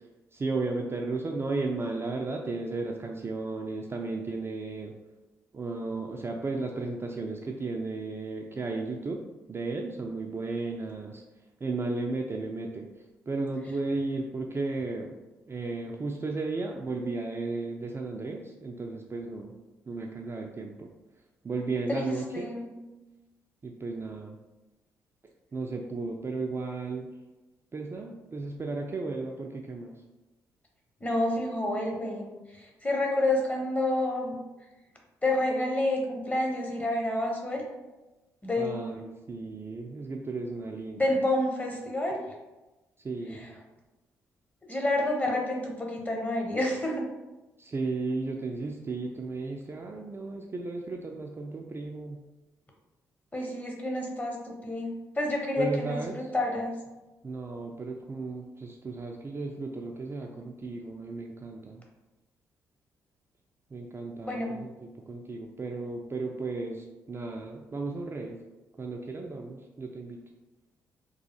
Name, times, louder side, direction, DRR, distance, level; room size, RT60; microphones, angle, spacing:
voice 1, 0.3-4.9 5.5-9.2 9.5-11.2 11.6-12.9 13.3-15.1 15.5-19.5 19.9-20.9 21.4-22.5 23.6-24.4 25.5-27.1 27.7-29.9 38.6-41.1 43.0-43.5 47.6-52.2 55.6-56.1 57.2-61.8 63.7-68.4 68.8-70.2, right 3 dB, 25° right, 1 dB, 0.3 m, -34 dB
voice 2, 21.9-22.7 31.0-32.3 32.5-34.4 35.2-37.6 38.4-39.0 41.0-42.2 43.3-43.5 44.6-47.1 53.3-56.7 64.2-64.6, left 1 dB, 15° left, 0 dB, 0.8 m, -29 dB
3.0 x 2.3 x 2.8 m, 1.1 s
figure-of-eight pair, 40°, 9 cm